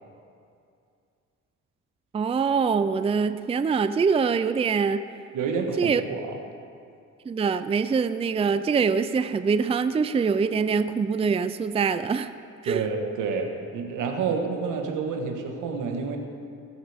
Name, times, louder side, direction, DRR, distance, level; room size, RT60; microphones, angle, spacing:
voice 1, 2.1-5.0 5.8-6.0 7.3-12.3 12.6-12.9, right 5 dB, 20° right, 11 dB, 0.4 m, -24 dB
voice 2, 5.3-6.3 12.6-16.2, right 5 dB, 85° right, 3 dB, 1.6 m, -29 dB
20.0 x 8.8 x 3.6 m, 2.4 s
cardioid pair, 90°, 30 cm